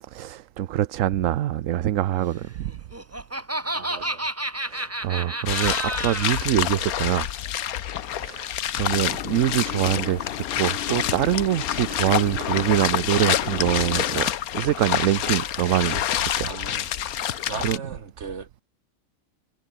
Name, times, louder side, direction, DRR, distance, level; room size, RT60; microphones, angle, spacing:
voice 1, 0.0-2.7 4.6-7.3 8.1-14.3 14.5-16.5 17.1-17.8, right 12 dB, 65° right, 1.0 m, -25 dB
Laughter, 2.7-6.5, right 1 dB, 10° right, 1.6 m, -30 dB
voice 2, 3.7-4.3 16.4-16.9 17.5-18.5, right 5 dB, 50° right, 2.0 m, -37 dB
sound 1, 5.5-17.8, left 11 dB, 75° left, 1.3 m, -27 dB
sound 2, 8.9-14.3, left 10 dB, 60° left, 0.6 m, -35 dB
omnidirectional pair, 1.5 m